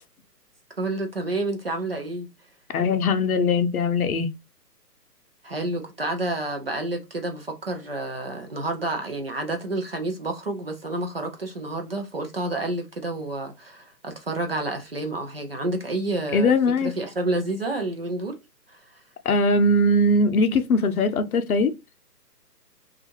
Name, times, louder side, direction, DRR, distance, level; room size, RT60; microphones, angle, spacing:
voice 1, 0.8-2.3 5.4-16.5 16.8-18.4, right 2 dB, 40° right, 0.5 m, -29 dB
voice 2, 2.7-4.3 16.3-16.9 19.2-21.7, left 2 dB, 60° left, 0.7 m, -20 dB
2.6 x 2.4 x 2.7 m
hypercardioid pair, 165°, 49 cm